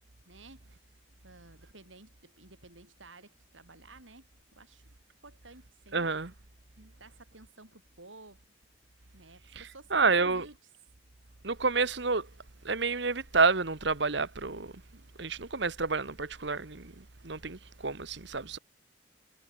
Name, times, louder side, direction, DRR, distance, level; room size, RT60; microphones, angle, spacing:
voice 1, 0.2-0.7 1.2-4.3 4.5-5.0 5.2-6.1 7.0-8.4 9.1-10.6, right 2 dB, 80° right, 6.1 m, -53 dB
voice 2, 5.9-6.3 6.8-6.9 9.9-10.5 11.4-12.3 12.6-14.7 15.2-18.6, right 4 dB, 65° right, 1.4 m, -29 dB
head